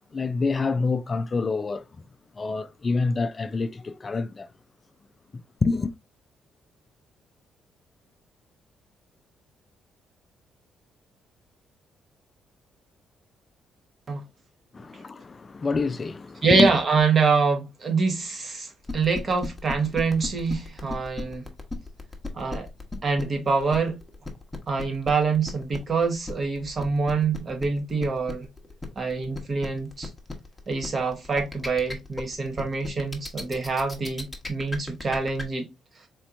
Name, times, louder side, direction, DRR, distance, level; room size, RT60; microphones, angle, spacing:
voice 1, 0.1-2.0 2.3-4.5 5.3-5.9 14.7-16.7, left 4 dB, 30° left, 0.3 m, -27 dB
voice 2, 16.4-21.5 22.3-22.7 23.0-24.0 24.7-28.5 28.9-30.1 30.7-35.7, right 4 dB, 40° right, 1.3 m, -25 dB
sound 1, 18.8-35.4, left 3 dB, 5° left, 1.0 m, -35 dB
4.2 x 2.9 x 2.5 m
cardioid pair, 90°, 0 cm